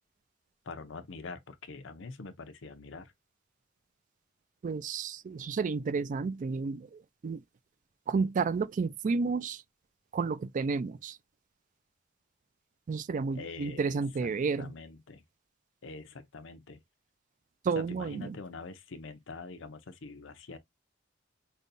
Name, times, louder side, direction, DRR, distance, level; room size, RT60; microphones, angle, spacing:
voice 1, 0.6-3.1 13.3-14.3 14.6-15.2 15.8-16.8 17.7-20.6, left 4 dB, 70° left, 0.6 m, -44 dB
voice 2, 4.6-7.4 8.1-9.6 10.1-11.2 12.9-14.7 17.6-18.4, right 4 dB, 40° right, 0.3 m, -31 dB
5.2 x 2.2 x 2.6 m
head